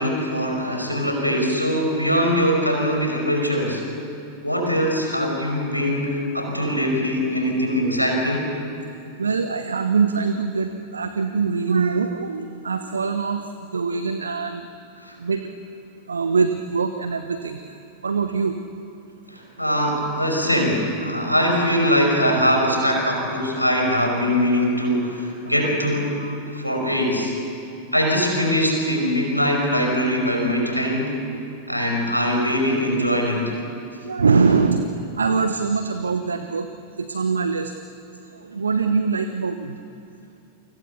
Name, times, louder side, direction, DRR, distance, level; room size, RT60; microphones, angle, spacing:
voice 1, 0.0-3.8 4.4-8.5 15.0-15.2 19.3-26.2 26.5-27.3 27.9-31.1 31.7-33.5, equal, 90° right, 1 dB, 5.6 m, -22 dB
voice 2, 9.2-14.6 15.2-15.4 16.1-17.8 18.0-18.6 25.5-25.7 26.2-26.4 30.3-30.4 34.0-36.7 37.0-37.7 38.4-39.7, right 5 dB, 75° right, 8 dB, 1.1 m, -23 dB
29.5 x 25.0 x 7.0 m, 2.7 s
figure-of-eight pair, 90°, 0 cm